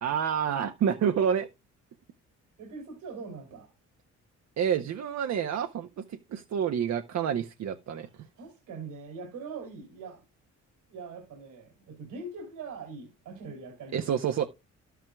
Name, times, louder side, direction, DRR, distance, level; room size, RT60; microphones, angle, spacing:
voice 1, 0.0-1.5 4.6-8.1 13.9-14.5, right 8 dB, 60° right, 0.9 m, -28 dB
voice 2, 2.6-3.7 8.0-10.2 10.9-14.2, right 4 dB, 85° right, 3.1 m, -42 dB
12.0 x 9.2 x 2.3 m
cardioid pair, 90°, 30 cm